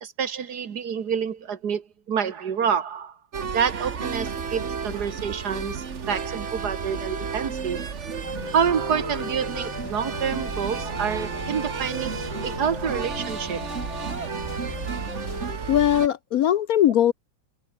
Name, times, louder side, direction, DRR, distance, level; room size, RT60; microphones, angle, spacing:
voice 1, 0.0-3.2 3.5-7.8 8.5-13.6, right 7 dB, 60° right, 2.0 m, -28 dB
sound 1, 3.3-16.1, right 6 dB, 40° right, 1.7 m, -32 dB
sound 2, 8.2-15.6, left 4 dB, 90° left, 4.7 m, -38 dB
voice 2, 15.7-17.1, left 11 dB, 65° left, 1.0 m, -20 dB
omnidirectional pair, 1.9 m